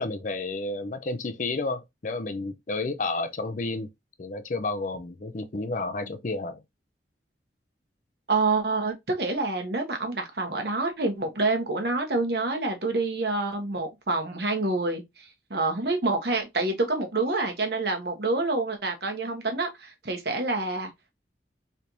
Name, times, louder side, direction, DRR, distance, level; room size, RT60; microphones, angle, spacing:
voice 1, 0.0-3.9 4.2-6.6, left 3 dB, 45° left, 0.5 m, -31 dB
voice 2, 8.3-20.9, right 3 dB, 60° right, 1.1 m, -27 dB
4.4 x 3.3 x 2.6 m
head